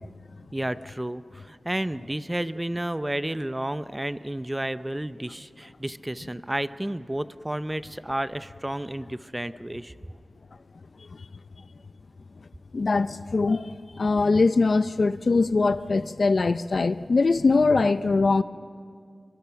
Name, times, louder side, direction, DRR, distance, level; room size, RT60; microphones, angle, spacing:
voice 1, 0.5-9.9, right 1 dB, 15° right, 14 dB, 0.6 m, -31 dB
voice 2, 12.7-18.4, left 3 dB, 65° left, 13 dB, 0.6 m, -22 dB
26.0 x 22.5 x 5.9 m, 2.3 s
wide cardioid pair, 60°, 0 cm